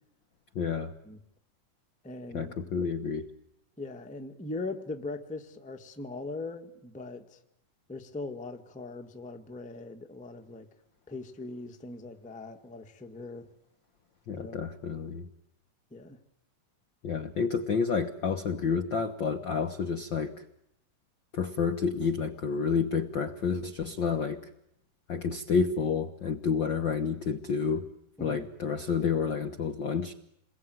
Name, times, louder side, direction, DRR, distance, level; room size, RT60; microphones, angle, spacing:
voice 1, 0.5-0.9 2.3-3.3 14.3-15.3 17.0-20.4 21.3-24.5 25.1-27.9 28.2-30.1, left 5 dB, 60° left, 7 dB, 1.2 m, -29 dB
voice 2, 2.0-2.5 3.8-7.4 7.9-10.7 11.1-13.5 14.4-14.7 15.9-16.2 28.2-28.4, left 2 dB, 5° left, 5 dB, 0.8 m, -40 dB
28.5 x 21.5 x 9.3 m, 0.79 s
omnidirectional pair, 3.6 m